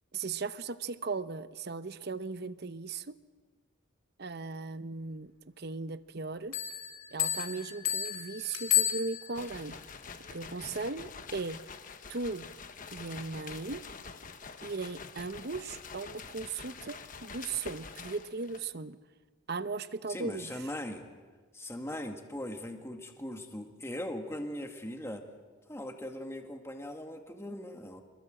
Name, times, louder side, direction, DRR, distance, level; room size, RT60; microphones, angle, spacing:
voice 1, 0.1-3.2 4.2-6.6 7.1-9.8 10.3-11.6 12.1-12.5 12.9-13.8 14.6-19.0 19.5-20.5, right 4 dB, 50° right, 13 dB, 0.8 m, -37 dB
Bell, 6.5-9.6, left 11 dB, 85° left, 3.0 m, -32 dB
sound 1, 9.3-18.7, left 5 dB, 40° left, 1.2 m, -46 dB
voice 2, 20.1-21.0 21.5-25.2 25.7-28.0, left 1 dB, 15° left, 4 dB, 2.0 m, -40 dB
27.0 x 21.0 x 7.7 m, 1.4 s
head